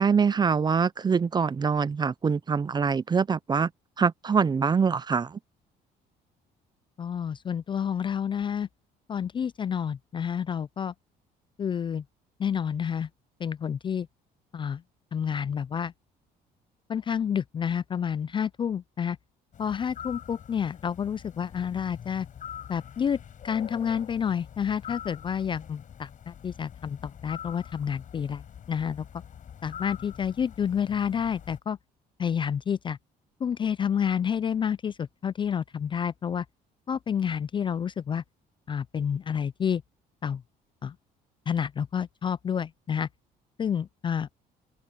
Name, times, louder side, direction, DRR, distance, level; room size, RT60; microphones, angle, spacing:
voice 1, 0.0-3.7 4.0-5.4, right 5 dB, 25° right, 0.6 m, -24 dB
voice 2, 7.0-8.7 9.1-10.9 11.6-12.0 12.4-13.1 13.4-14.1 14.5-14.8 15.1-15.9 16.9-19.2 19.6-22.3 22.7-23.2 23.4-28.4 28.7-29.0 29.6-31.8 32.2-33.0 33.4-36.4 36.9-38.2 38.7-39.8 40.2-40.4 40.8-40.9 41.5-43.1 43.6-44.3, left 8 dB, 30° left, 0.3 m, -29 dB
sound 1, 19.5-31.6, left 9 dB, 50° left, 5.3 m, -45 dB
cardioid pair, 110°, 17 cm